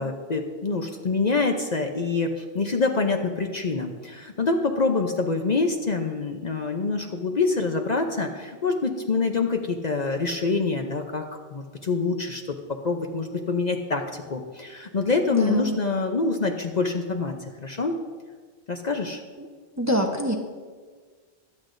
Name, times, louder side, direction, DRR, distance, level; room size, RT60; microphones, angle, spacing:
voice 1, 0.0-11.2 11.5-12.6 12.8-18.0 18.7-19.2, left 3 dB, 45° left, 3 dB, 0.8 m, -26 dB
voice 2, 15.3-15.8 19.4-19.5 19.8-20.3, right 1 dB, 15° right, 1 dB, 0.9 m, -25 dB
22.5 x 8.0 x 2.6 m, 1.5 s
omnidirectional pair, 1.1 m